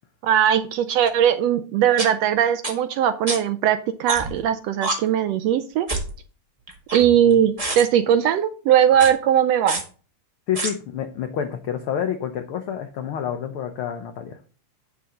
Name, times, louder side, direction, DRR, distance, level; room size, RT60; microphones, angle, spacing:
voice 1, 0.2-5.9 6.9-9.8, right 9 dB, 80° right, 10 dB, 1.5 m, -19 dB
sound 1, 1.1-1.2 2.0-2.1 2.6-2.7 3.3-3.4 4.1-4.4 4.8-4.9 5.9-6.1 6.7-7.3 7.6-7.8 8.9-9.1 9.7-9.8 10.5-10.7, right 2 dB, 20° right, 1.1 m, -26 dB
voice 2, 10.5-14.4, left 9 dB, 80° left, 7 dB, 1.2 m, -28 dB
8.4 x 6.9 x 3.8 m, 0.39 s
omnidirectional pair, 3.4 m